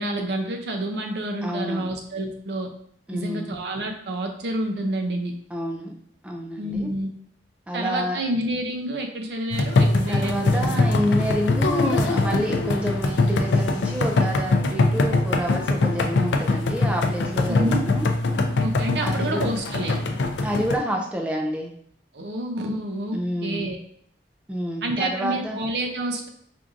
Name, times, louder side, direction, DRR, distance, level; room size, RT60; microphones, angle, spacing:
voice 1, 0.0-2.7 3.1-5.3 6.6-7.1 7.7-10.9 17.6-17.9 18.6-20.0 22.1-23.8 24.8-26.3, right 1 dB, 70° right, 4 dB, 0.6 m, -28 dB
voice 2, 1.4-1.9 3.1-3.5 5.5-5.9 6.2-6.9 7.7-8.2 10.1-18.1 19.0-19.5 20.4-21.7 23.1-23.7 24.5-25.6, equal, 5° right, 1 dB, 0.3 m, -28 dB
sound 1, 9.5-20.8, left 2 dB, 85° left, 0.4 m, -22 dB
4.4 x 2.5 x 2.5 m, 0.65 s
head